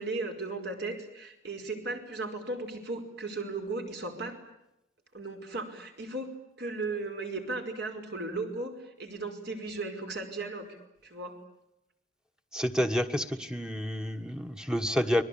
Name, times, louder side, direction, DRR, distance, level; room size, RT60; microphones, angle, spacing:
voice 1, 0.0-4.4 5.1-10.8 11.0-11.4, right 3 dB, 60° right, 5 dB, 5.1 m, -36 dB
voice 2, 12.5-15.2, equal, 5° right, 7 dB, 1.4 m, -29 dB
30.0 x 22.5 x 8.7 m, 0.87 s
head